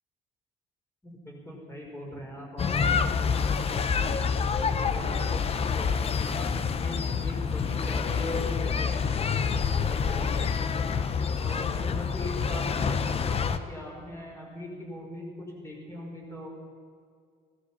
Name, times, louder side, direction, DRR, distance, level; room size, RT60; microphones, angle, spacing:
voice 1, 1.0-3.8 4.1-10.7 11.4-16.5, left 1 dB, 15° left, -2 dB, 5.3 m, -41 dB
sound 1, 2.6-13.6, left 6 dB, 35° left, 0.8 m, -27 dB
18.5 x 13.0 x 5.6 m, 2.2 s
cardioid pair, 110°, 17 cm